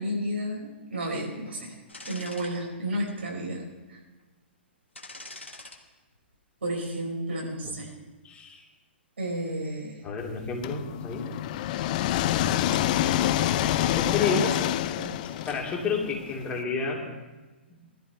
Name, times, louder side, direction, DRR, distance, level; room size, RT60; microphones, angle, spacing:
voice 1, 0.0-1.8 2.1-4.0 6.6-7.9 9.2-10.0 12.7-12.8 14.2-14.4 15.0-15.2, right 1 dB, 75° right, -2 dB, 4.9 m, -32 dB
sound 1, 1.9-2.5 3.0-3.1 5.0-5.8 6.2-6.4, left 2 dB, 90° left, 1.6 m, -43 dB
voice 2, 8.2-8.6 10.0-11.3 13.9-14.4 15.5-17.1 17.7-17.8, left 5 dB, 20° left, -1 dB, 2.8 m, -31 dB
sound 2, 10.6-16.5, left 12 dB, 40° left, 0.5 m, -27 dB
20.5 x 13.5 x 3.6 m, 1.2 s
figure-of-eight pair, 120°, 6 cm